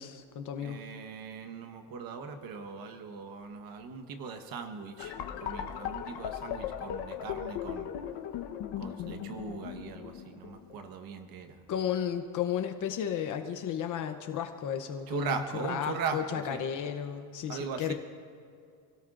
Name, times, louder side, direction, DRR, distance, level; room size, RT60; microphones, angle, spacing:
voice 1, 0.0-0.8 11.7-17.9, left 9 dB, 40° left, 6 dB, 0.8 m, -33 dB
voice 2, 0.6-7.9 8.8-11.6 15.1-16.6 17.5-17.9, right 5 dB, 45° right, 6 dB, 1.3 m, -39 dB
sound 1, 5.0-10.9, left 10 dB, 55° left, 1.1 m, -38 dB
28.5 x 17.5 x 2.6 m, 2.4 s
cardioid pair, 170°, 49 cm